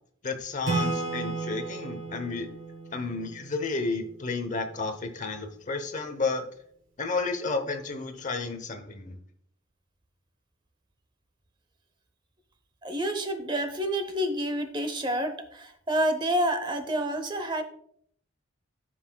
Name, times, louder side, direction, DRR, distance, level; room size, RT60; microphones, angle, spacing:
voice 1, 0.2-2.5 2.9-6.4 7.0-9.2, left 3 dB, 35° left, 8 dB, 0.8 m, -32 dB
Acoustic guitar / Strum, 0.7-4.2, right 3 dB, 80° right, 3.3 m, -33 dB
voice 2, 12.8-17.6, right 1 dB, 20° right, 8 dB, 0.8 m, -28 dB
14.5 x 5.7 x 2.3 m, 0.65 s
head